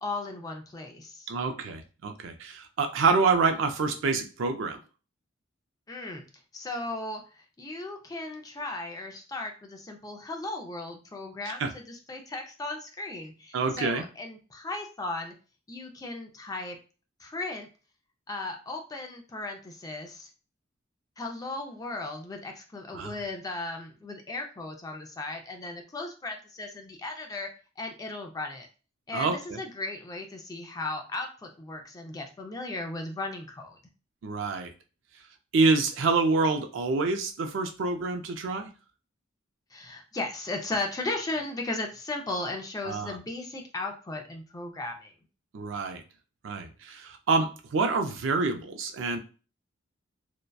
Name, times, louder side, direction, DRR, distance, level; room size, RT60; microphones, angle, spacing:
voice 1, 0.0-1.3 5.9-6.2 6.5-15.3 15.7-16.8 17.2-17.7 18.3-20.3 21.2-27.5 27.8-28.7 29.1-33.8 39.7-45.1, left 2 dB, 20° left, 3 dB, 0.4 m, -36 dB
voice 2, 1.3-4.8 11.5-11.7 13.5-14.0 22.9-23.1 29.1-29.6 34.2-34.7 35.5-38.7 42.8-43.2 45.5-46.0 46.4-49.2, right 4 dB, 70° right, 6 dB, 0.4 m, -27 dB
2.7 x 2.1 x 2.2 m, 0.35 s
head